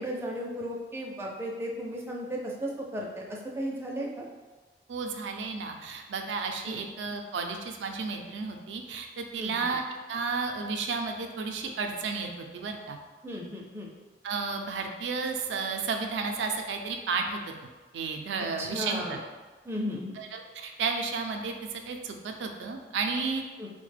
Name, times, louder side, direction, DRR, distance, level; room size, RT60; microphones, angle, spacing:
voice 1, 0.0-4.2 6.6-6.8 9.4-9.7 13.2-13.9 18.6-19.2 19.6-20.1 23.6-23.7, equal, 15° right, -2 dB, 0.4 m, -35 dB
voice 2, 4.9-9.8 10.1-13.0 14.2-17.5 17.9-19.2 20.2-23.4, right 4 dB, 85° right, 4 dB, 0.4 m, -32 dB
3.7 x 2.1 x 3.2 m, 1.3 s
head